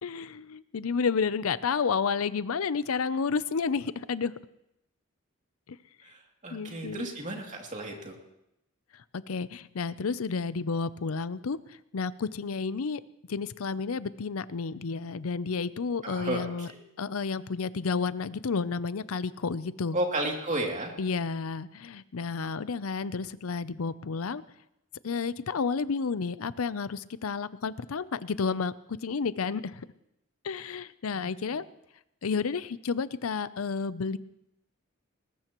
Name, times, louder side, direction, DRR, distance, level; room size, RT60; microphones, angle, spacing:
voice 1, 0.0-4.3 5.7-5.8 6.5-7.1 9.3-11.6 11.9-13.0 13.3-16.7 17.0-20.0 21.0-24.4 25.0-28.7 29.0-29.9 30.4-31.6 32.2-34.2, left 5 dB, 85° left, 16 dB, 0.6 m, -31 dB
voice 2, 6.0-8.2 16.0-16.8 19.9-20.9 31.1-31.6, right 1 dB, 35° right, 0 dB, 2.7 m, -33 dB
20.5 x 19.0 x 3.1 m, 0.83 s
head